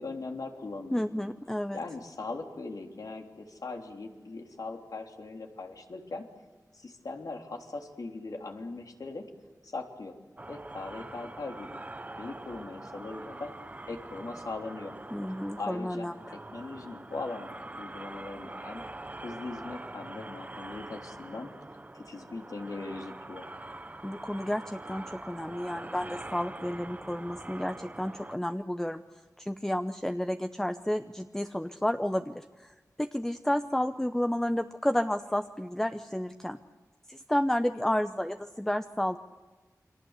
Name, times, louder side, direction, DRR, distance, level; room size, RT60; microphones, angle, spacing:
voice 1, 0.0-1.0 1.7-6.2 6.7-9.3 9.6-10.2 10.5-11.8 12.2-13.5 13.9-14.9 15.6-18.8 19.2-21.5 21.9-23.5, left 3 dB, 75° left, 3 dB, 3.3 m, -40 dB
voice 2, 0.9-1.8 15.1-16.1 24.0-29.0 29.4-36.6 37.1-39.2, left 1 dB, 5° left, 8 dB, 0.8 m, -31 dB
sound 1, 10.4-28.4, right 2 dB, 25° right, 0.8 m, -44 dB
29.5 x 24.0 x 8.2 m, 1.3 s
wide cardioid pair, 90°, 6 cm